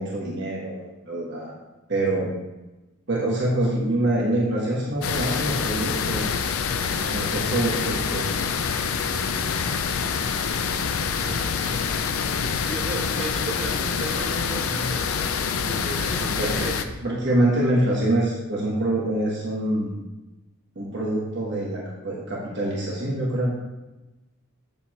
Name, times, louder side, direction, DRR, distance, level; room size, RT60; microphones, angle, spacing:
voice 1, 0.0-1.5 1.9-2.3 3.1-6.3 7.0-8.3 16.2-16.5 17.0-19.9 20.7-23.5, right 1 dB, 50° right, -4 dB, 1.3 m, -25 dB
sound 1, 5.0-16.9, left 6 dB, 80° left, 0.5 m, -26 dB
voice 2, 11.1-11.9 12.6-15.1 15.6-16.9, right 2 dB, 30° right, -5 dB, 1.5 m, -34 dB
8.2 x 6.8 x 3.0 m, 1.1 s
head